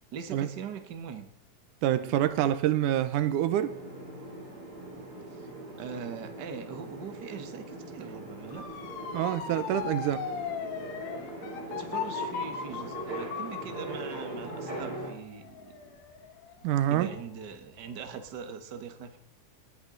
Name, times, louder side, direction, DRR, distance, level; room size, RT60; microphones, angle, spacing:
voice 1, 0.1-1.3 5.3-5.5 5.8-8.7 11.7-16.0 16.6-16.7 16.9-19.2, right 6 dB, 55° right, 1.2 m, -42 dB
voice 2, 1.8-3.8 9.1-10.3 16.6-17.1, right 12 dB, 80° right, 2.2 m, -26 dB
sound 1, 3.5-15.1, right 2 dB, 30° right, 3.7 m, -41 dB
Motor vehicle (road) / Siren, 8.5-17.4 17.8-18.3, left 7 dB, 75° left, 2.9 m, -38 dB
19.5 x 10.5 x 3.9 m
omnidirectional pair, 3.7 m